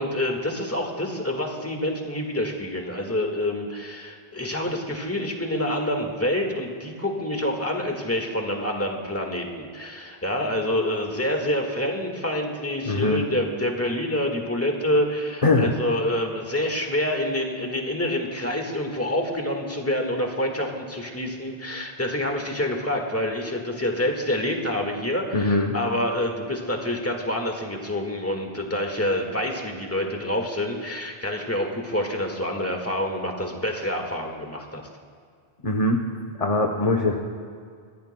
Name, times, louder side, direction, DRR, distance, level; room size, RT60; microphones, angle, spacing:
voice 1, 0.0-34.9, left 1 dB, 15° left, 2 dB, 1.6 m, -27 dB
voice 2, 12.9-13.2 15.4-15.7 25.3-25.7 35.6-36.0 36.4-37.2, left 2 dB, 35° left, 2 dB, 0.9 m, -21 dB
24.0 x 15.5 x 2.2 m, 2.1 s
omnidirectional pair, 1.0 m